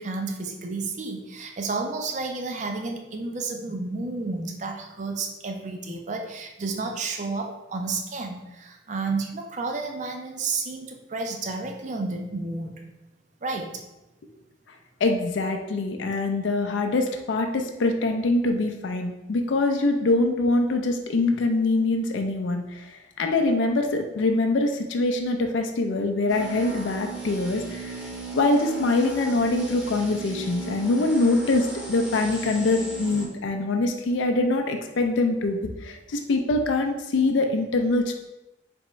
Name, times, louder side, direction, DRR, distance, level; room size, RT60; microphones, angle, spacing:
voice 1, 0.0-12.8 13.4-13.8 33.1-33.2, right 3 dB, 40° right, 3 dB, 0.5 m, -31 dB
voice 2, 15.0-27.9 28.3-38.1, left 2 dB, 75° left, 4 dB, 0.4 m, -24 dB
sound 1, 26.3-33.3, right 4 dB, 5° right, 0.7 m, -36 dB
3.5 x 3.0 x 4.3 m, 0.98 s
head